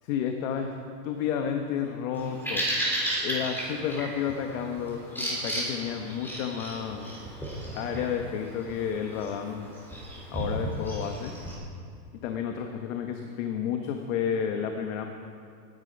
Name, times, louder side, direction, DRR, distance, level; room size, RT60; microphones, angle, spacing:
voice 1, 0.1-0.7 1.0-2.6 3.2-7.1 7.7-9.8 10.3-11.3 12.2-15.1, left 8 dB, 50° left, 4 dB, 1.3 m, -31 dB
Bird vocalization bird call bird song, 2.1-11.6, right 1 dB, 5° left, 4.0 m, -34 dB
18.5 x 10.5 x 5.4 m, 2.3 s
hypercardioid pair, 140°, 50 cm